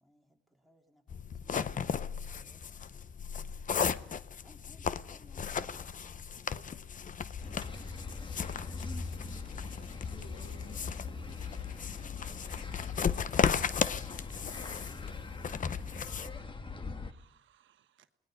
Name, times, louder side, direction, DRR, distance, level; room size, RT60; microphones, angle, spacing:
voice 1, 0.0-0.4 0.6-3.0 3.8-5.8 7.7-7.9 10.1-10.2 12.6-13.4, equal, ahead, 2 dB, 3.6 m, -64 dB
sound 1, 1.1-16.3, left 7 dB, 40° left, 0.8 m, -36 dB
voice 2, 6.3-6.9 7.4-7.9 9.6-11.0, left 3 dB, 65° left, 4 dB, 3.7 m, -57 dB
sound 2, 7.4-17.1, left 4 dB, 25° left, 1.5 m, -42 dB
voice 3, 14.5-15.5 17.0-18.1, right 11 dB, 70° right, 10 dB, 1.3 m, -65 dB
29.5 x 19.0 x 5.2 m, 0.73 s
cardioid pair, 90°, 20 cm